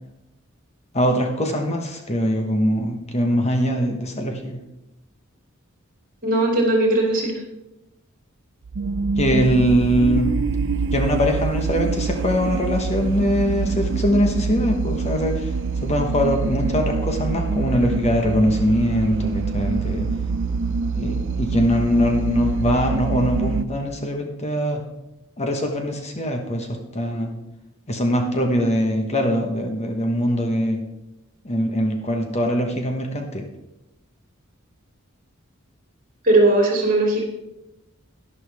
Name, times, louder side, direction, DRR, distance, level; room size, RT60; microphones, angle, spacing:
voice 1, 0.9-4.6 9.2-10.3 10.9-15.5 15.8-20.1 21.0-24.8 25.4-27.3 27.9-30.8 31.4-33.4, equal, 30° left, 3 dB, 1.2 m, -22 dB
voice 2, 6.2-7.4 36.2-37.3, right 2 dB, 40° right, 0 dB, 3.0 m, -18 dB
sound 1, 8.6-23.6, right 4 dB, 60° right, 0.5 m, -25 dB
11.5 x 11.0 x 3.5 m, 0.93 s
head